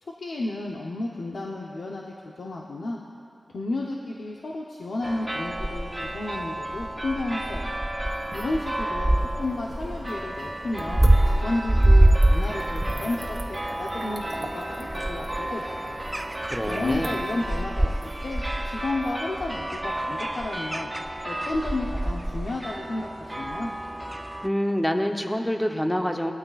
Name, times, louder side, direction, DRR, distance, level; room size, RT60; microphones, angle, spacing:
voice 1, 0.0-3.0 3.5-7.7 8.3-16.0 16.7-20.9 21.2-23.7, left 2 dB, 80° left, -2 dB, 0.8 m, -32 dB
sound 1, 5.0-24.5, right 1 dB, 20° right, 0.4 m, -26 dB
sound 2, 8.1-20.0, right 2 dB, 50° right, 1.4 m, -43 dB
voice 2, 16.4-17.1 24.4-26.3, equal, 10° left, 4 dB, 0.9 m, -26 dB
19.0 x 13.0 x 2.5 m, 2.6 s
wide cardioid pair, 65°, 0 cm